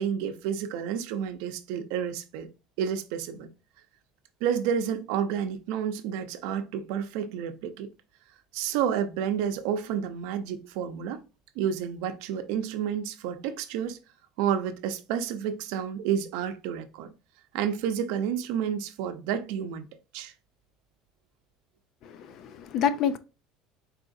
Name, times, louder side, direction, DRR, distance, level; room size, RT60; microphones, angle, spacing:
voice 1, 0.0-2.5 2.8-3.5 4.4-7.9 8.5-11.2 11.6-14.0 14.4-17.1 17.5-19.9 20.1-20.3, right 8 dB, 70° right, 0.6 m, -30 dB
voice 2, 22.0-23.2, left 7 dB, 40° left, 0.4 m, -28 dB
4.7 x 4.1 x 2.6 m
cardioid pair, 170°, 0 cm